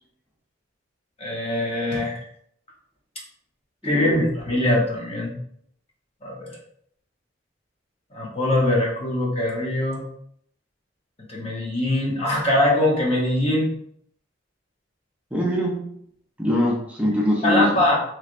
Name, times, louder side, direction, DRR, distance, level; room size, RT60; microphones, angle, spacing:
voice 1, 1.2-2.3 3.8-5.3 6.2-6.6 8.1-10.0 11.3-13.7 17.4-18.0, left 1 dB, 35° left, -3 dB, 0.9 m, -22 dB
voice 2, 3.8-4.2 15.3-15.8 16.4-17.6, left 1 dB, 10° right, -3 dB, 0.7 m, -22 dB
3.2 x 3.1 x 2.5 m, 0.68 s
head